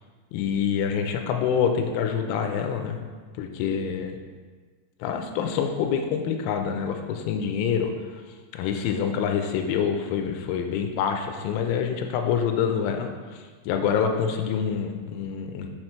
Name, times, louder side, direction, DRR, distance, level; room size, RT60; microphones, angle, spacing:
voice 1, 0.3-3.0 3.4-4.2 5.0-7.9 8.5-15.7, left 7 dB, 80° left, 5 dB, 3.0 m, -26 dB
7.0 x 5.9 x 4.4 m, 1.5 s
omnidirectional pair, 5.5 m